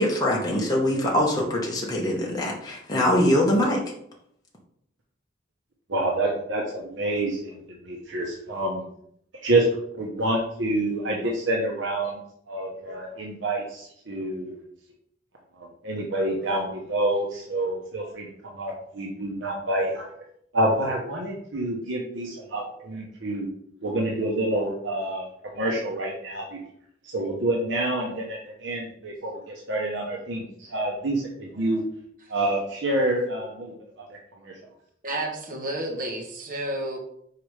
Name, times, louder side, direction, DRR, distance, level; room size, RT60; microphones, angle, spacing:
voice 1, 0.0-3.8, left 1 dB, 20° left, -2 dB, 1.1 m, -23 dB
voice 2, 5.9-8.8 9.4-9.7 9.9-12.2 12.5-14.5 15.6-20.1 20.5-23.5 23.8-26.6 27.1-31.8 32.3-34.2 34.4-34.5, right 1 dB, 80° right, -2 dB, 1.0 m, -27 dB
voice 3, 35.0-37.0, right 1 dB, 45° right, 0 dB, 1.2 m, -31 dB
4.8 x 4.8 x 4.9 m, 0.71 s
head